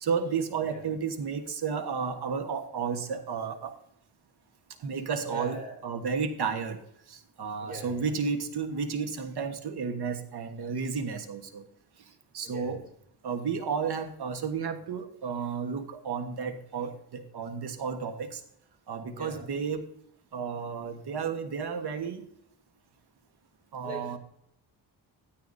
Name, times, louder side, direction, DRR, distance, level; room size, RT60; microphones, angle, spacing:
voice 1, 0.0-3.7 4.8-5.6 5.8-6.8 7.1-11.7 12.3-12.8 13.2-18.4 18.9-19.8 20.3-22.3 23.7-24.2, right 6 dB, 65° right, 6 dB, 1.3 m, -32 dB
voice 2, 5.3-5.8 7.6-8.2 12.4-12.9 19.1-19.5 23.8-24.2, right 1 dB, 20° right, 1 dB, 4.2 m, -41 dB
15.5 x 13.0 x 2.6 m, 0.73 s
cardioid pair, 110°, 42 cm